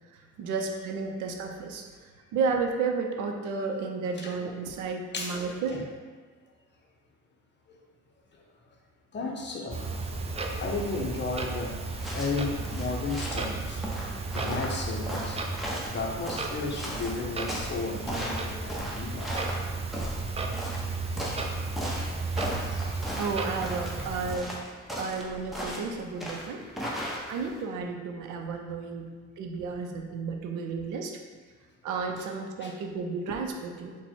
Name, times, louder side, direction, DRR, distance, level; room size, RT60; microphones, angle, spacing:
voice 1, 0.1-5.8 23.2-24.5 25.0-26.6 27.3-31.1 31.8-34.0, right 4 dB, 85° right, 3 dB, 0.6 m, -32 dB
voice 2, 5.1-5.8 7.7-7.8 9.1-10.0 10.6-13.8 14.3-19.3 32.6-32.7, left 3 dB, 35° left, 0 dB, 0.7 m, -34 dB
Clock, 9.7-24.4, right 3 dB, 20° right, 0.4 m, -34 dB
sound 1, 11.9-27.6, equal, ahead, 0.8 m, -37 dB
4.1 x 2.2 x 4.4 m, 1.5 s
cardioid pair, 90°, 30 cm